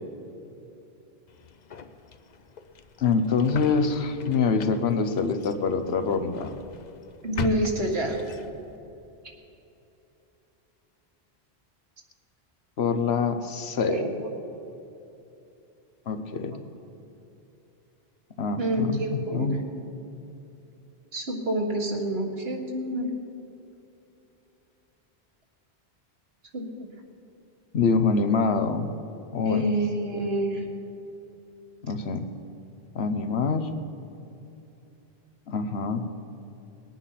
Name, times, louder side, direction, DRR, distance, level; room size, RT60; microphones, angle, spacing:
sound 1, 1.3-8.8, left 5 dB, 45° left, 0.7 m, -40 dB
voice 1, 3.0-6.5 12.8-14.0 16.1-16.6 18.4-19.6 27.7-28.9 29.3-29.7 31.8-32.3 32.9-33.7 35.5-36.1, left 4 dB, 75° left, 9 dB, 1.2 m, -25 dB
voice 2, 7.2-8.2 13.9-14.3 18.6-19.6 21.1-23.1 26.5-26.7 29.4-30.6, right 1 dB, 70° right, 1 dB, 1.9 m, -27 dB
20.5 x 9.1 x 5.7 m, 2.9 s
omnidirectional pair, 1.1 m